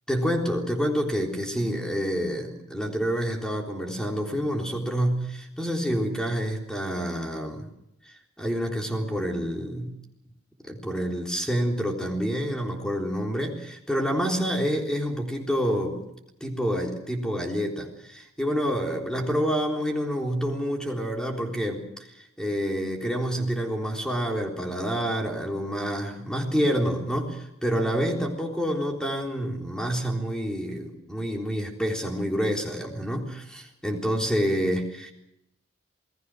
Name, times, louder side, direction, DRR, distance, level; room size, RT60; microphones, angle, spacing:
voice 1, 0.1-7.7 8.1-10.0 10.7-16.1 16.4-21.8 22.4-35.1, equal, 5° left, 1 dB, 3.8 m, -28 dB
28.0 x 19.5 x 6.3 m, 0.84 s
head